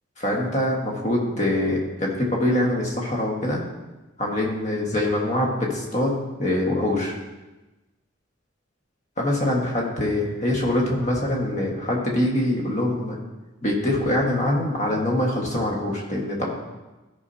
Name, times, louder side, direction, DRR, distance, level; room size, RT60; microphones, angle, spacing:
voice 1, 0.2-3.6 4.2-7.1 9.2-13.2 13.6-16.5, left 1 dB, 40° left, -1 dB, 1.4 m, -24 dB
13.5 x 5.6 x 2.7 m, 1.1 s
head